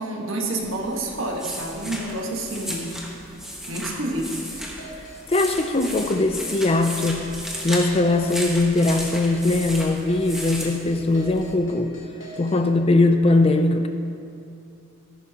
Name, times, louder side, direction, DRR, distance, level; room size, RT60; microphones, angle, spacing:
voice 1, 0.0-2.9 3.7-4.4, right 2 dB, 75° right, 0 dB, 1.5 m, -28 dB
sound 1, 0.6-11.5, equal, ahead, 1.2 m, -35 dB
sound 2, 4.3-12.6, right 1 dB, 65° left, 2.4 m, -42 dB
voice 2, 5.3-7.3 7.6-12.0 12.4-13.9, left 2 dB, 30° left, 7 dB, 0.4 m, -20 dB
13.5 x 11.5 x 2.9 m, 2.7 s
head